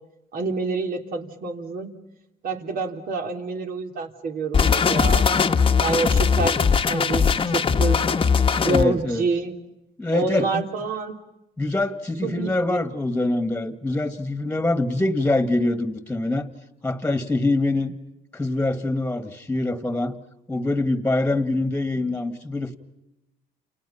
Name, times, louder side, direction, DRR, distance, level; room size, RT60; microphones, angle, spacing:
voice 1, 0.3-1.9 2.4-5.3 5.8-6.6 6.9-8.0 8.6-9.5 10.1-11.2 12.2-12.5, right 3 dB, 60° right, 5 dB, 3.4 m, -27 dB
sound 1, 4.5-8.8, left 6 dB, 30° left, 1.3 m, -20 dB
voice 2, 8.6-9.2 10.0-10.6 11.6-16.5 16.8-17.9 18.3-20.2 20.5-22.8, left 2 dB, 10° left, 10 dB, 1.9 m, -24 dB
29.5 x 29.0 x 5.8 m, 0.91 s
cardioid pair, 110°, 17 cm